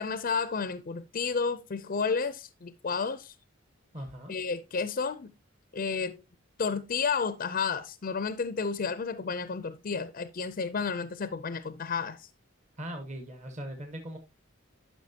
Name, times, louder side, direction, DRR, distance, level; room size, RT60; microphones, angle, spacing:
voice 1, 0.0-3.3 4.3-5.3 5.7-6.2 6.6-12.3, left 5 dB, 45° left, 0.5 m, -31 dB
voice 2, 3.9-4.3 12.8-14.2, equal, 35° right, 1.1 m, -39 dB
11.5 x 5.6 x 2.8 m
head